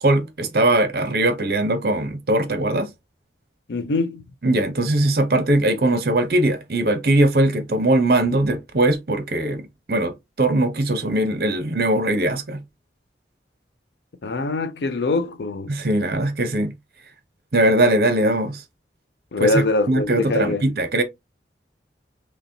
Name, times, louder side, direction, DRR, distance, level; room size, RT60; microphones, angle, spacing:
voice 1, 0.0-2.9 4.4-12.6 15.7-16.7 17.5-18.6 19.4-21.0, right 1 dB, 55° right, 0.7 m, -20 dB
voice 2, 3.7-4.2 14.2-15.7 19.3-20.6, left 2 dB, 70° left, 0.5 m, -23 dB
3.9 x 3.0 x 2.7 m
head